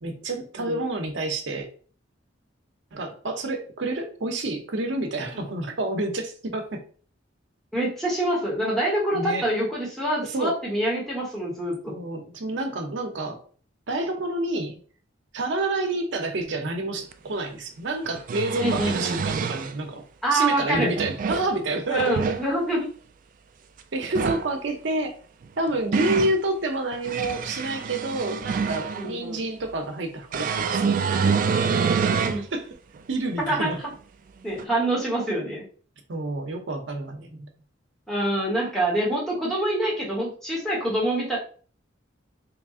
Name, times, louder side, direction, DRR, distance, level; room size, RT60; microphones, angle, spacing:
voice 1, 0.0-1.7 2.9-6.8 9.1-9.5 10.3-10.6 11.9-13.4 13.9-14.8 15.3-20.0 20.3-22.4 23.9-25.2 25.6-31.6 32.0-32.1 32.4-32.7 33.1-33.8 36.1-37.5, right 2 dB, 70° right, 4 dB, 0.7 m, -29 dB
voice 2, 7.7-11.9 18.6-19.2 20.2-20.9 21.9-22.9 29.0-29.4 32.2-32.5 33.4-33.7 34.4-35.6 38.1-41.4, right 1 dB, ahead, -5 dB, 1.3 m, -26 dB
sound 1, 17.1-17.2 18.1-19.7 20.7-21.5 21.9-22.4 24.0-24.5 25.4-26.4 26.9-29.1 30.3-32.4 33.0-33.1 34.6-34.7, right 5 dB, 45° right, 0.3 m, -26 dB
3.1 x 2.4 x 3.6 m, 0.42 s
head